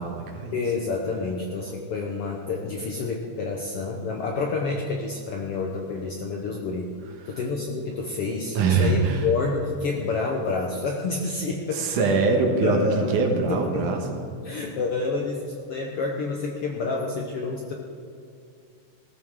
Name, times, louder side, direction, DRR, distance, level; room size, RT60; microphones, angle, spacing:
voice 1, 0.0-0.6 7.2-7.4 8.5-9.3 11.7-14.1, right 4 dB, 75° right, 3 dB, 2.8 m, -23 dB
voice 2, 0.5-6.9 7.3-11.9 12.6-13.9 14.4-17.7, left 4 dB, 70° left, 1 dB, 1.4 m, -29 dB
17.0 x 14.0 x 3.7 m, 2.4 s
omnidirectional pair, 3.8 m